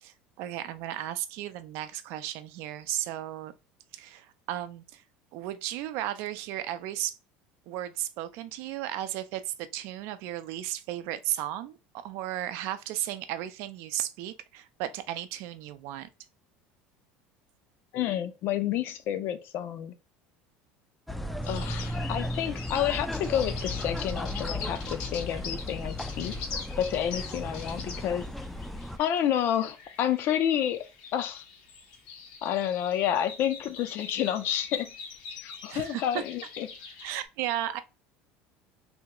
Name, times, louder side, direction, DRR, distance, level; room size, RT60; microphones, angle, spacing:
voice 1, 0.0-3.5 3.9-5.0 5.3-7.2 7.7-11.8 12.0-16.1 35.7-36.2 37.0-37.8, right 13 dB, 70° right, 0.4 m, -34 dB
voice 2, 17.9-19.9 21.5-26.4 26.8-28.3 29.0-30.8 31.1-31.4 32.4-34.9 35.3-36.7, left 10 dB, 55° left, 0.5 m, -29 dB
sound 1, 21.1-29.0, left 1 dB, ahead, 0.4 m, -35 dB
sound 2, 21.4-37.2, left 5 dB, 80° left, 1.0 m, -44 dB
3.4 x 2.3 x 2.9 m
supercardioid pair, 110°, 4 cm